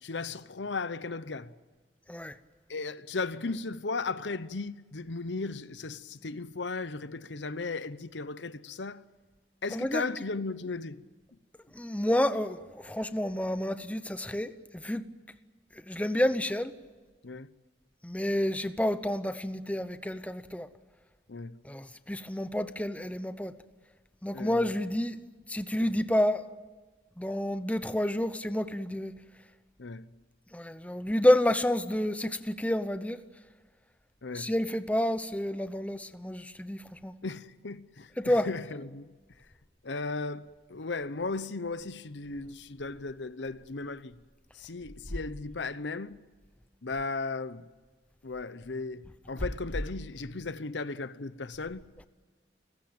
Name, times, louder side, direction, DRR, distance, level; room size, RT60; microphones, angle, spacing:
voice 1, 0.0-1.5 2.7-9.0 9.6-11.0 17.2-17.5 21.3-21.6 24.3-24.6 29.8-30.1 34.2-34.5 37.2-39.0 39.8-44.1 44.6-46.2 46.8-47.6 48.2-51.8, left 3 dB, 80° left, 0.9 m, -36 dB
voice 2, 9.7-10.0 11.7-15.1 15.7-16.7 18.0-20.7 21.6-23.5 24.2-25.2 25.5-26.4 27.2-29.1 30.5-33.2 34.3-37.2 38.2-38.5 42.4-42.6, left 1 dB, 10° left, 0.8 m, -29 dB
30.0 x 15.5 x 8.9 m
head